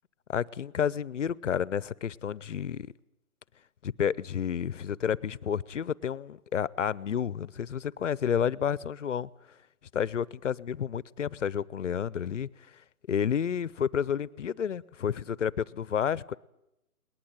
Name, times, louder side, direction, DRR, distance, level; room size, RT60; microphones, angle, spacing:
voice 1, 0.3-2.9 3.8-9.3 9.9-12.5 13.1-16.3, left 8 dB, 55° left, 20 dB, 0.8 m, -30 dB
21.0 x 19.5 x 8.9 m, 0.86 s
hypercardioid pair, 160°, 45 cm